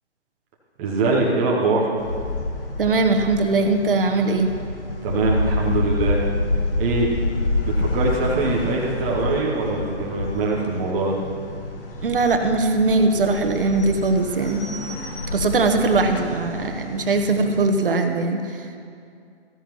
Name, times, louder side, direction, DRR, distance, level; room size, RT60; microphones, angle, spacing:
voice 1, 0.8-1.9 5.0-6.2 6.8-7.2 7.6-11.2, right 3 dB, 15° right, -4 dB, 0.8 m, -23 dB
sound 1, 2.0-17.6, left 2 dB, 50° left, 1.7 m, -28 dB
voice 2, 2.8-4.5 12.0-14.6 15.3-18.7, right 3 dB, 50° right, 5 dB, 1.2 m, -20 dB
15.0 x 14.5 x 3.0 m, 2.3 s
figure-of-eight pair, 145°, 34 cm